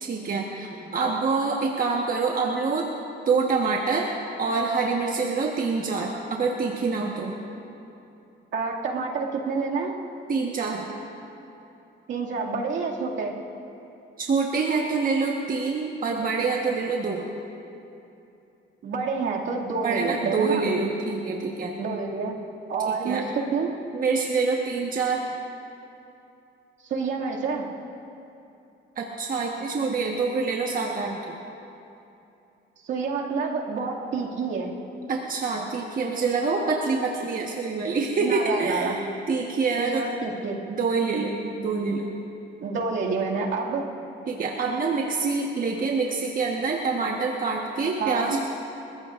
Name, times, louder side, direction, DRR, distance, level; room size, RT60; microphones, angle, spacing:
voice 1, 0.0-2.9 3.3-4.1 4.4-7.4 10.3-10.9 14.2-17.3 19.8-21.7 22.9-23.2 23.9-25.3 29.0-31.4 35.1-40.1 40.7-42.1 44.3-48.4, right 4 dB, 45° right, -1 dB, 1.4 m, -26 dB
voice 2, 8.5-10.0 12.1-13.3 18.8-20.7 21.8-22.4 22.7-23.7 26.8-27.6 32.8-34.7 38.2-39.0 39.8-40.6 42.6-43.9 48.0-48.4, right 4 dB, 70° right, -3 dB, 2.4 m, -28 dB
29.5 x 14.5 x 2.6 m, 2.8 s
cardioid pair, 90°, 20 cm